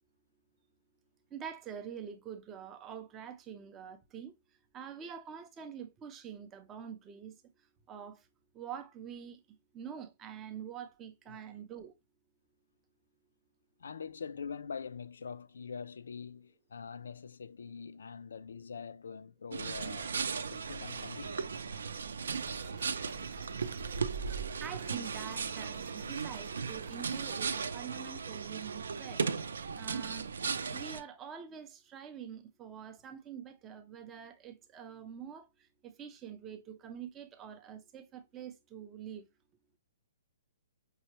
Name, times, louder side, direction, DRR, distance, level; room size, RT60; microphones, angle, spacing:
voice 1, 1.3-4.3 4.7-7.4 7.9-8.2 8.5-9.4 9.7-11.9 24.6-29.2 29.8-30.3 30.7-35.5 35.8-39.2, right 8 dB, 15° right, 0.4 m, -45 dB
voice 2, 13.8-20.2 20.5-21.7, left 6 dB, 90° left, 0.4 m, -44 dB
sound 1, 19.5-31.0, right 5 dB, 85° right, 0.4 m, -37 dB
sound 2, 22.3-27.7, right 5 dB, 40° right, 0.7 m, -52 dB
5.4 x 2.1 x 2.9 m
hypercardioid pair, 175°, 0 cm